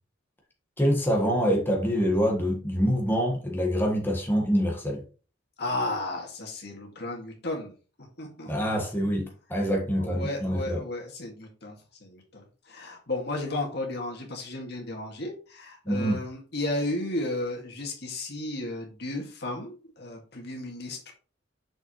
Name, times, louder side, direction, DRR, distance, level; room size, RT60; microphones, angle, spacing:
voice 1, 0.8-5.0 8.5-10.8 15.8-16.2, equal, 10° left, -1 dB, 1.5 m, -25 dB
voice 2, 5.6-7.7 8.2-8.5 10.0-11.8 12.0-21.1, left 2 dB, 60° left, 0 dB, 2.0 m, -34 dB
6.7 x 5.5 x 3.1 m, 0.37 s
head